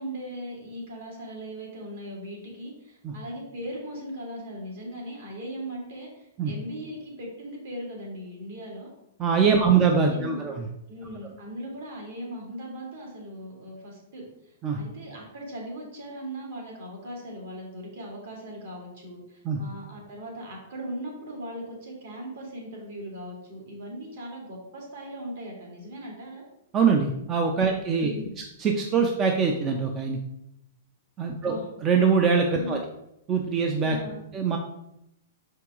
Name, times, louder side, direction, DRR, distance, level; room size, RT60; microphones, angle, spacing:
voice 1, 0.0-8.9 9.4-9.8 10.0-10.4 10.9-26.4 28.0-28.3 31.2-31.6 32.5-32.8 33.8-34.2, equal, 55° right, -2 dB, 2.2 m, -39 dB
voice 2, 9.2-10.5 14.6-14.8 19.4-19.6 26.7-28.1 28.6-30.2 31.2-31.5 31.8-32.8 33.3-34.0 34.3-34.6, right 5 dB, 15° right, 3 dB, 0.4 m, -23 dB
6.0 x 4.5 x 3.6 m, 0.82 s
hypercardioid pair, 170°, 0 cm